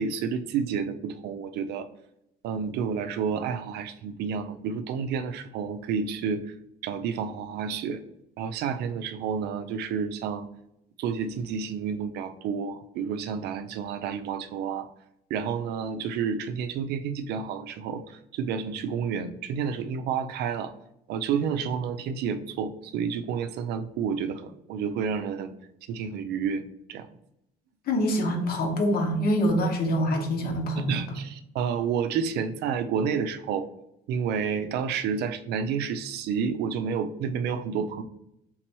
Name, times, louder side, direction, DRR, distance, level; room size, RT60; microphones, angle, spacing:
voice 1, 0.0-1.9 2.4-6.5 6.8-8.0 8.4-10.5 11.0-14.9 15.3-20.7 21.1-25.5 25.9-27.1 30.8-33.7 34.1-38.0, right 6 dB, 75° right, 10 dB, 0.5 m, -30 dB
voice 2, 27.9-31.0, equal, 60° left, 3 dB, 1.0 m, -25 dB
3.8 x 3.0 x 4.4 m, 0.80 s
cardioid pair, 110°, 17 cm